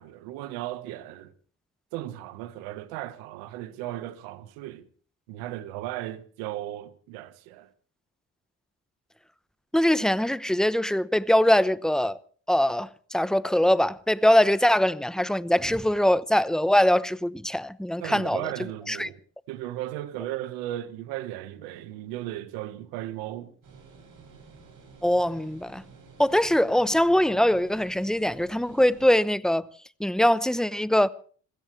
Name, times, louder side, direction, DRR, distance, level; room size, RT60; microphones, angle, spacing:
voice 1, 0.0-1.3 1.9-4.9 5.3-7.7 18.0-19.2 19.5-23.5, right 14 dB, 90° right, 1.4 m, -36 dB
voice 2, 9.7-12.2 12.5-18.4 18.9-19.1 25.0-25.8 26.2-29.7 30.0-31.1, left 1 dB, ahead, 0.9 m, -22 dB
sound 1, 23.6-29.1, right 4 dB, 60° right, 7.4 m, -51 dB
26.5 x 16.5 x 3.3 m
supercardioid pair, 60°, 36 cm